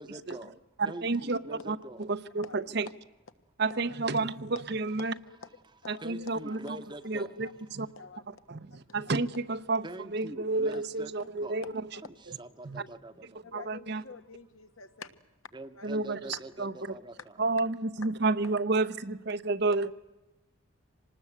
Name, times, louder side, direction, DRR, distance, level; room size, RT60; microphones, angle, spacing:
voice 1, 0.0-2.1 6.0-7.5 9.8-11.1 11.4-11.6 12.0-13.5 15.5-17.5, right 2 dB, 20° right, 0.9 m, -45 dB
voice 2, 0.8-1.4 1.7-2.9 3.6-5.1 5.9-6.6 7.0-7.9 8.5-9.9 10.1-11.6 12.6-12.8 13.5-14.0 15.8-16.7 17.4-19.9, right 3 dB, 55° right, 0.8 m, -30 dB
voice 3, 2.4-2.9 3.7-4.0 4.5-4.6 5.2-5.5 5.8-6.6 7.4-7.5 8.0-8.2 9.2-9.3 10.7-10.9 11.2-12.0 12.8-12.9 13.4-15.2 15.7-15.9 16.3-16.4, left 5 dB, 85° left, 1.5 m, -48 dB
26.0 x 19.5 x 8.1 m
head